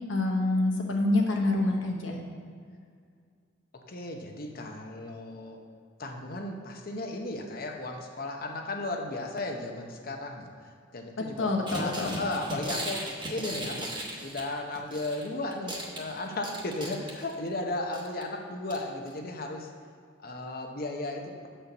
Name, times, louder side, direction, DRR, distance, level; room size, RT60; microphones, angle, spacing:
voice 1, 0.1-2.2 11.2-12.2, left 2 dB, 70° left, 0 dB, 1.1 m, -27 dB
voice 2, 3.9-5.6 6.0-19.7 20.2-21.5, left 2 dB, 50° left, 3 dB, 0.8 m, -35 dB
sound 1, 11.7-15.3 15.5-17.5 17.9-18.2 18.7-18.8 19.1-19.2, right 1 dB, 25° right, 1.0 m, -37 dB
6.8 x 4.4 x 6.7 m, 2.1 s
head